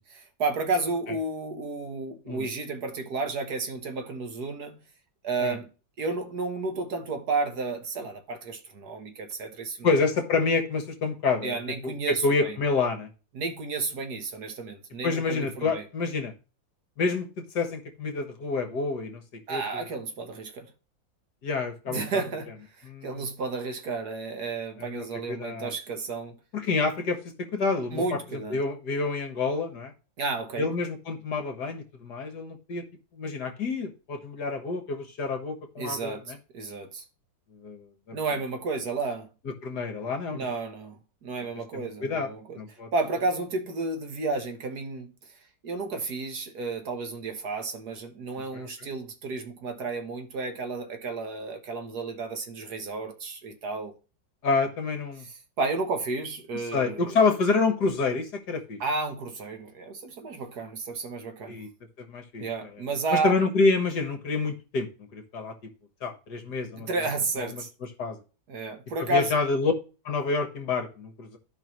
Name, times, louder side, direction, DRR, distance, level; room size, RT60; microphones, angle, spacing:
voice 1, 0.2-4.8 5.2-5.7 6.0-9.9 11.4-12.6 13.3-15.9 19.5-20.7 21.9-26.4 27.9-28.6 30.2-30.8 35.8-37.0 38.1-39.3 40.3-42.6 42.9-53.9 55.2-57.2 58.8-61.6 62.4-63.4 66.7-67.7 68.5-69.4, right 3 dB, 60° right, 1.6 m, -32 dB
voice 2, 9.8-11.6 11.8-11.9 12.2-13.1 15.0-16.3 17.0-19.2 19.5-19.8 21.4-22.0 22.9-23.2 25.0-25.7 26.5-28.2 28.5-29.9 30.6-32.8 33.1-36.2 37.6-38.2 39.6-40.5 41.7-42.3 42.6-42.9 48.5-48.7 54.4-55.2 56.7-58.8 61.5-61.7 62.1-62.4 63.2-65.6 66.0-66.9 67.5-67.6 68.0-68.2 69.1-69.7 70.1-71.4, left 4 dB, 60° left, 1.8 m, -28 dB
13.0 x 5.2 x 3.1 m
omnidirectional pair, 2.1 m